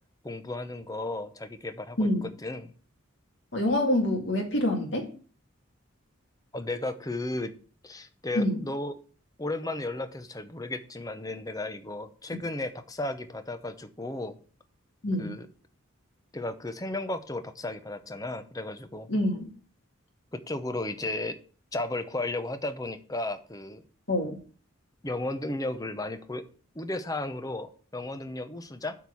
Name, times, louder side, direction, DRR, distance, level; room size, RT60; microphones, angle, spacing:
voice 1, 0.2-2.7 6.5-7.5 7.8-9.0 9.4-14.4 15.2-15.5 16.3-19.1 20.3-21.4 21.7-23.8 25.0-26.4 26.7-29.0, left 2 dB, 15° left, 10 dB, 0.7 m, -34 dB
voice 2, 3.5-5.1 8.3-8.6 15.0-15.3 19.1-19.5 24.1-24.4, left 1 dB, 65° left, 3 dB, 2.2 m, -26 dB
8.1 x 4.6 x 7.0 m, 0.40 s
head